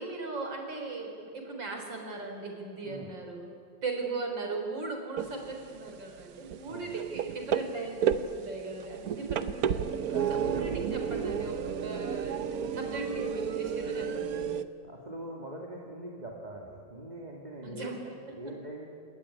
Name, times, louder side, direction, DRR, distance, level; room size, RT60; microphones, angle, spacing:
voice 1, 0.0-3.5 3.8-12.4 12.7-14.7 17.6-18.0 18.3-18.5, right 3 dB, 75° right, 3 dB, 5.0 m, -38 dB
sound 1, 5.2-5.6 5.9-14.6, right 8 dB, 60° right, 1.2 m, -32 dB
voice 2, 10.1-10.5 14.8-18.9, right 1 dB, 20° right, -2 dB, 2.7 m, -43 dB
27.0 x 20.0 x 9.9 m, 2.4 s
omnidirectional pair, 2.0 m